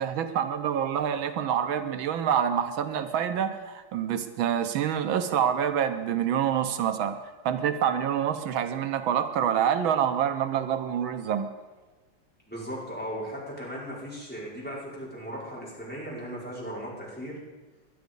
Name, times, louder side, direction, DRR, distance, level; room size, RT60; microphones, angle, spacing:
voice 1, 0.0-7.2 7.4-11.5, right 9 dB, 85° right, 9 dB, 1.6 m, -27 dB
voice 2, 12.5-17.4, equal, 5° left, -6 dB, 4.8 m, -37 dB
19.0 x 11.5 x 5.4 m, 1.2 s
omnidirectional pair, 2.1 m